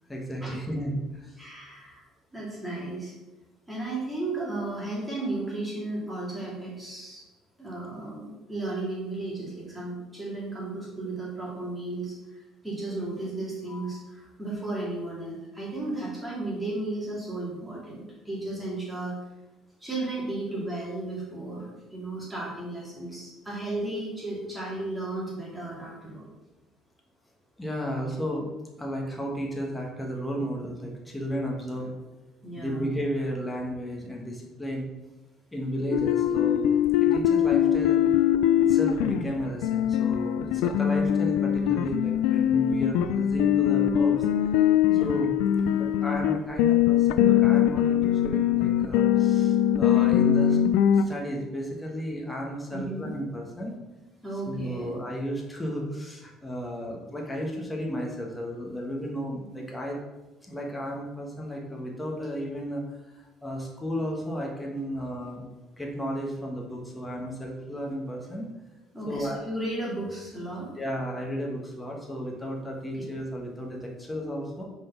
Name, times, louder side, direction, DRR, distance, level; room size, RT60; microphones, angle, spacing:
voice 1, 0.1-1.4 13.7-14.0 27.6-28.5 28.8-31.9 32.6-34.9 35.5-38.0 38.7-44.2 45.0-50.6 50.9-53.8 54.5-60.0 60.4-65.4 65.8-68.5 69.1-69.5 70.8-74.6, equal, 10° left, -1 dB, 1.2 m, -33 dB
voice 2, 1.4-2.0 2.3-3.1 3.7-7.2 7.6-19.2 19.8-26.3 31.7-31.9 32.4-32.8 44.8-45.2 45.6-45.7 52.7-53.1 54.2-54.9 68.9-70.7 72.9-73.0, right 2 dB, 10° right, -5 dB, 2.2 m, -34 dB
sound 1, 35.9-51.1, left 10 dB, 85° left, 0.3 m, -22 dB
4.9 x 4.0 x 5.7 m, 1.1 s
cardioid pair, 100°, 0 cm